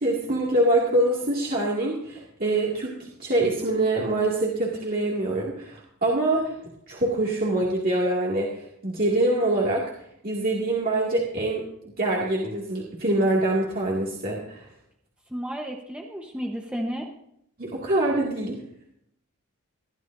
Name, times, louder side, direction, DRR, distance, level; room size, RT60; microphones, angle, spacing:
voice 1, 0.0-2.9 3.2-6.5 6.9-9.8 10.2-11.7 12.0-14.7 17.6-18.6, right 1 dB, 40° right, -4 dB, 2.3 m, -24 dB
voice 2, 15.3-17.1, equal, 5° right, 1 dB, 1.1 m, -32 dB
21.0 x 12.5 x 2.7 m, 0.73 s
head